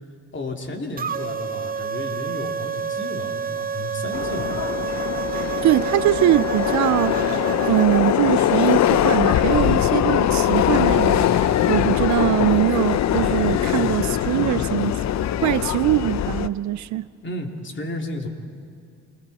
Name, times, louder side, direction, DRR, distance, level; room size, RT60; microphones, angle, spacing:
voice 1, 0.3-4.5 17.2-18.3, left 2 dB, 40° left, 3.0 m, -32 dB
sound 1, 1.0-8.2, right 6 dB, 30° right, 0.6 m, -29 dB
Subway metro underground, 4.1-16.5, left 11 dB, 70° left, 0.7 m, -21 dB
voice 2, 5.3-7.4 7.7-15.0 15.4-17.1, right 15 dB, 75° right, 0.5 m, -22 dB
29.5 x 21.0 x 4.2 m
supercardioid pair, 60°, 29 cm